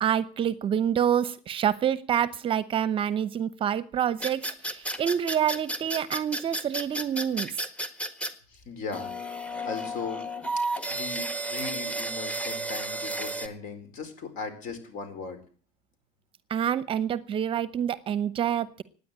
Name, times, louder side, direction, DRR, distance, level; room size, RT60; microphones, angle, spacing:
voice 1, 0.0-7.7 16.5-18.8, right 9 dB, 35° right, 17 dB, 0.8 m, -27 dB
sound 1, 4.2-8.3 8.9-13.5, right 1 dB, 10° left, 1.6 m, -32 dB
voice 2, 8.5-9.1 9.6-10.2 10.9-15.4, left 4 dB, 55° left, 10 dB, 4.4 m, -38 dB
16.0 x 9.7 x 8.7 m, 0.43 s
cardioid pair, 130°, 16 cm